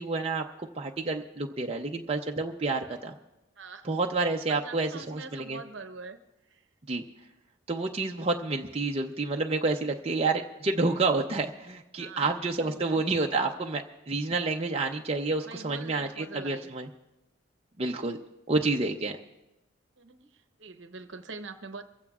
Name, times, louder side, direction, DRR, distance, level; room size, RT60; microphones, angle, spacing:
voice 1, 0.0-3.1 3.8-5.6 6.9-7.0 7.7-16.9 17.8-18.2 18.5-19.2, right 3 dB, 30° right, 1 dB, 0.6 m, -29 dB
voice 2, 3.6-3.9 4.5-6.2 6.5-6.7 12.0-12.3 12.6-13.0 15.4-16.7 20.0-21.8, right 4 dB, 60° right, 8 dB, 0.9 m, -43 dB
23.5 x 15.5 x 2.4 m, 0.95 s
head